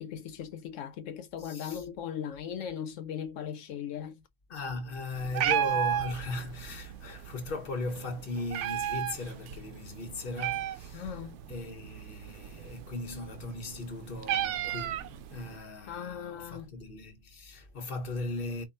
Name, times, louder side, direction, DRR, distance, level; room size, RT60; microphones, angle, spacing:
voice 1, 0.0-4.2 10.9-11.4 15.9-16.8, left 8 dB, 85° left, 1.0 m, -38 dB
voice 2, 1.4-1.8 4.5-11.2 11.5-18.6, left 2 dB, 50° left, 1.2 m, -38 dB
Meow, 5.1-15.6, right 11 dB, 75° right, 0.9 m, -35 dB
4.9 x 2.3 x 3.8 m
omnidirectional pair, 1.3 m